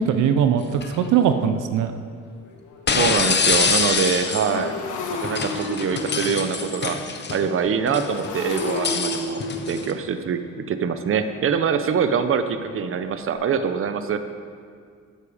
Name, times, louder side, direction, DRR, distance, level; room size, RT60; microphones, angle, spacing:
voice 1, 0.0-1.9, right 7 dB, 85° right, 9 dB, 0.7 m, -20 dB
sound 1, 0.7-1.0 2.9-4.6 5.2-7.5 7.9-9.9, left 5 dB, 35° left, 1.0 m, -25 dB
Motorcycle, 1.4-1.5 1.7-13.3, left 2 dB, 80° left, 1.4 m, -34 dB
voice 2, 2.9-4.7 5.1-7.0 7.3-9.4 9.7-10.4 10.7-14.2, right 6 dB, 45° right, 9 dB, 0.8 m, -24 dB
12.0 x 8.3 x 5.0 m, 2.1 s
cardioid pair, 90°, 30 cm